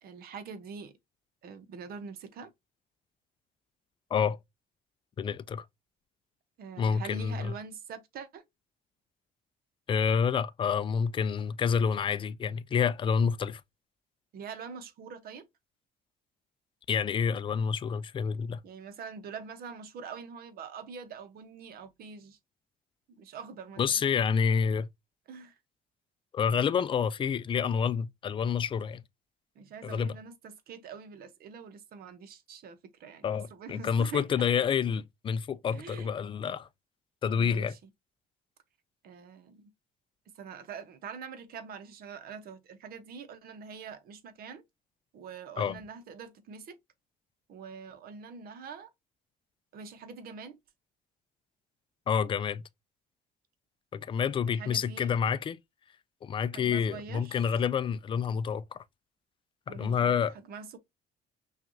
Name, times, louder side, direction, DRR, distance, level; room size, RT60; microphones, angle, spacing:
voice 1, 0.0-0.9 1.4-2.5 6.6-8.4 14.3-15.5 18.6-22.4 23.2-23.8 25.3-25.5 29.6-34.2 35.7-36.1 37.3-37.9 39.0-39.7 40.4-44.6 45.1-46.8 47.5-48.9 49.7-50.6 54.5-55.1 56.5-57.6 59.7-60.8, right 6 dB, 65° right, 0.9 m, -44 dB
voice 2, 5.2-5.6 6.8-7.5 9.9-13.6 16.9-18.6 23.8-24.9 26.3-29.0 29.8-30.2 33.2-36.7 37.2-37.7 45.6-45.8 52.1-52.6 53.9-55.6 56.2-58.8 59.7-60.3, left 7 dB, 30° left, 0.4 m, -28 dB
5.7 x 2.4 x 2.7 m
cardioid pair, 110°, 17 cm